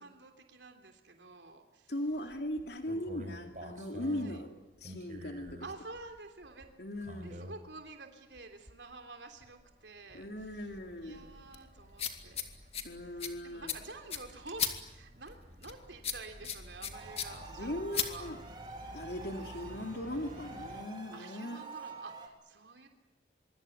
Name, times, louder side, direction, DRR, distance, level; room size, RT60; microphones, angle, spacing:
voice 1, 0.0-1.9 3.9-4.4 5.6-6.7 7.2-10.6 11.0-12.4 13.0-18.3 21.1-22.9, right 3 dB, 80° right, 5 dB, 3.2 m, -49 dB
voice 2, 1.9-5.7 6.8-7.5 10.1-11.3 12.8-13.8 17.6-18.4 18.9-21.6, left 1 dB, 65° left, 4 dB, 2.6 m, -39 dB
sound 1, 2.1-7.8 8.4-8.9 9.3-20.8, equal, 45° right, 4.1 m, -51 dB
sound 2, 10.4-18.8, left 8 dB, 35° left, 2.4 m, -40 dB
sound 3, 16.9-22.3, right 3 dB, 25° right, 3.6 m, -48 dB
25.0 x 24.5 x 9.4 m, 0.94 s
head